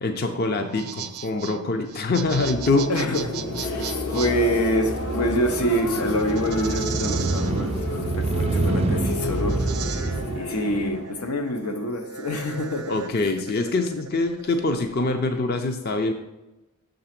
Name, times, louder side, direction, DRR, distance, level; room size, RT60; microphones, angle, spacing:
voice 1, 0.0-2.9 12.9-16.1, left 3 dB, 45° left, 0.5 m, -24 dB
sound 1, 0.5-15.3, right 7 dB, 90° right, 0.5 m, -38 dB
sound 2, 1.9-11.2, left 1 dB, 70° left, 1.2 m, -31 dB
voice 2, 2.9-13.0, equal, 90° left, 0.9 m, -27 dB
Motorcycle, 3.3-10.4, right 3 dB, 30° right, 0.3 m, -28 dB
6.8 x 3.9 x 5.8 m
head